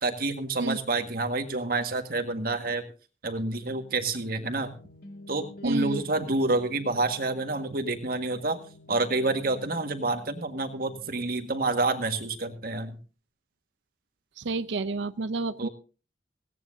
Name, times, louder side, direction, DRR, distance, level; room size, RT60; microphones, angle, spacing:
voice 1, 0.0-2.8 3.2-4.7 5.3-8.6 8.9-12.9 15.6-15.7, right 2 dB, 55° right, 7 dB, 1.8 m, -28 dB
sound 1, 3.3-13.0, left 1 dB, 60° left, 2.3 m, -50 dB
voice 2, 5.6-6.0 14.4-15.7, right 3 dB, 90° right, 13 dB, 0.6 m, -30 dB
17.5 x 17.0 x 2.7 m, 0.36 s
head